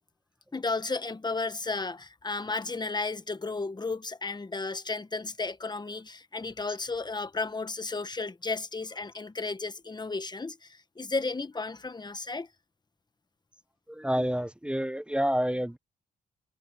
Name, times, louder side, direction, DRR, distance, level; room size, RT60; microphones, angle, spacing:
voice 1, 0.5-12.5, left 3 dB, 25° left, 1.3 m, -33 dB
voice 2, 13.9-15.8, equal, 5° right, 1.0 m, -28 dB
cardioid pair, 60°, 17 cm